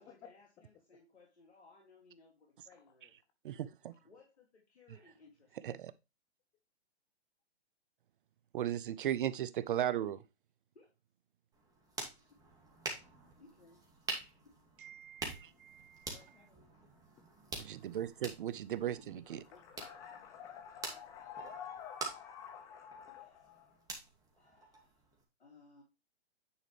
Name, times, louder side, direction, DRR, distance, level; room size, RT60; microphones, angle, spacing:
voice 1, 0.0-3.1 4.0-5.6 10.0-10.1 10.7-10.9 12.3-12.4 13.4-13.8 14.4-14.5 16.1-16.6 18.7-18.8 19.1-20.2 23.1-23.4 24.3-25.0 25.4-25.8, left 3 dB, 75° left, 2.9 m, -62 dB
voice 2, 3.4-3.9 5.6-5.9 8.5-10.2 14.8-16.1 17.6-19.4, right 11 dB, 50° right, 0.5 m, -37 dB
sound 1, 11.5-25.2, right 3 dB, 10° right, 2.3 m, -47 dB
voice 3, 19.5-23.8, left 8 dB, 10° left, 0.4 m, -49 dB
9.7 x 5.0 x 3.3 m
hypercardioid pair, 130°, 33 cm